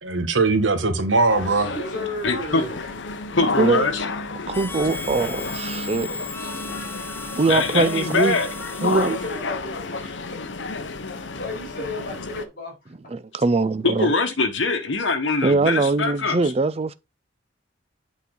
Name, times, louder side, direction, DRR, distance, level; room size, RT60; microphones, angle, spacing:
voice 1, 0.0-1.7, right 3 dB, 80° right, 1.4 m, -20 dB
sound 1, 1.3-12.5, left 3 dB, 70° left, 0.9 m, -31 dB
voice 2, 1.7-2.9 8.8-10.4 11.1-12.7, left 1 dB, 50° left, 4.5 m, -33 dB
voice 3, 2.2-2.7 3.4-4.0 7.5-8.5 13.8-16.5, left 3 dB, 90° left, 1.2 m, -23 dB
Harmonica, 4.5-9.6, left 3 dB, 10° left, 0.5 m, -36 dB
voice 4, 4.5-6.1 6.4-6.5 7.4-8.4 8.8-9.2 13.1-14.1 15.4-16.9, right 3 dB, 35° right, 0.5 m, -22 dB
8.3 x 4.2 x 3.8 m
head